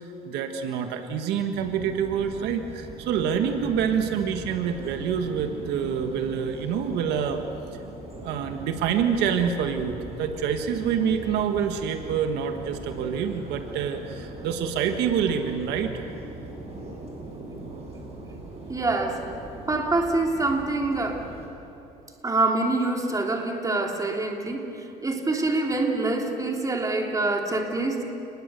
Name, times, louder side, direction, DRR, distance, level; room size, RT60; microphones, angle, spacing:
voice 1, 0.3-7.4 8.2-16.1, right 7 dB, 90° right, 6 dB, 1.6 m, -27 dB
sound 1, 1.5-21.5, right 2 dB, 35° right, 6.8 m, -40 dB
voice 2, 18.7-19.3 19.7-21.2 22.2-28.1, right 2 dB, 20° right, 1 dB, 3.2 m, -25 dB
30.0 x 20.5 x 6.9 m, 2.8 s
cardioid pair, 110°, 17 cm